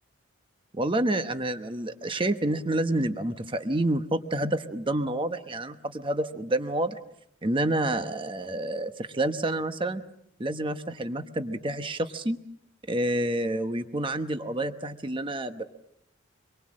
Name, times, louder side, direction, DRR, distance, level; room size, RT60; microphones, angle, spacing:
voice 1, 0.7-7.0 7.4-10.0 10.4-12.4 12.9-15.6, right 1 dB, 25° right, 8 dB, 1.1 m, -28 dB
26.0 x 23.0 x 7.6 m, 0.75 s
head